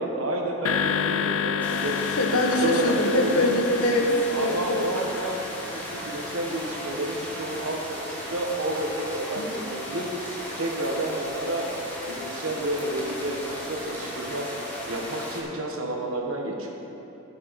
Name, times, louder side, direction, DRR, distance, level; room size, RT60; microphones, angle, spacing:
voice 1, 0.0-2.0 2.3-3.5 4.3-10.1 10.6-11.7 12.1-14.5 14.9-16.8, right 1 dB, 70° right, 1 dB, 1.4 m, -30 dB
sound 1, 0.6-7.0, left 7 dB, 70° left, 0.6 m, -30 dB
sound 2, 1.6-15.4, equal, 10° left, 1.8 m, -36 dB
voice 2, 2.2-4.9 9.3-9.6, left 1 dB, 85° left, 2 dB, 1.2 m, -23 dB
12.5 x 8.7 x 4.2 m, 2.9 s
head